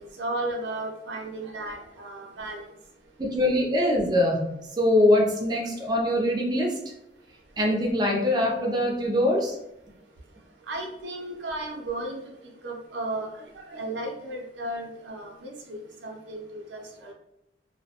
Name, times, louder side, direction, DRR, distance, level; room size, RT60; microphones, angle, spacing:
voice 1, 0.0-2.8 10.3-17.1, right 2 dB, 85° right, 1 dB, 0.6 m, -35 dB
voice 2, 3.2-4.5 4.8-6.7 7.6-9.6, left 1 dB, 25° right, -1 dB, 0.4 m, -23 dB
2.3 x 2.1 x 2.7 m, 0.83 s
head